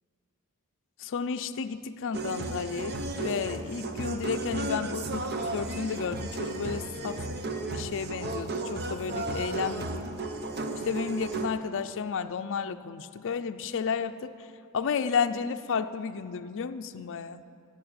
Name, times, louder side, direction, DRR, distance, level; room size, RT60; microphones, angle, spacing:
voice 1, 1.0-7.2 7.7-9.8 10.8-14.3 14.7-17.4, left 6 dB, 60° left, 9 dB, 0.5 m, -32 dB
sound 1, 2.1-11.5, right 2 dB, 50° right, 0.9 m, -34 dB
14.0 x 7.7 x 8.8 m, 2.4 s
head